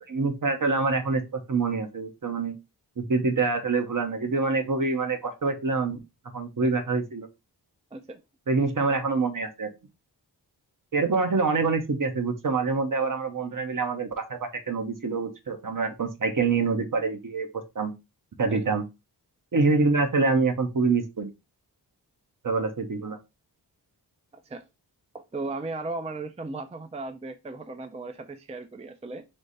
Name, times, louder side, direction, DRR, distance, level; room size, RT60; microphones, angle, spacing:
voice 1, 0.1-2.6 3.0-6.0 6.3-7.3 8.5-9.7 10.9-17.5 17.7-17.9 18.4-18.8 19.5-21.3 22.4-23.2, right 4 dB, 50° right, 0.9 m, -26 dB
voice 2, 25.1-29.2, right 3 dB, 15° right, 0.4 m, -36 dB
3.4 x 3.3 x 3.9 m
wide cardioid pair, 70°, 42 cm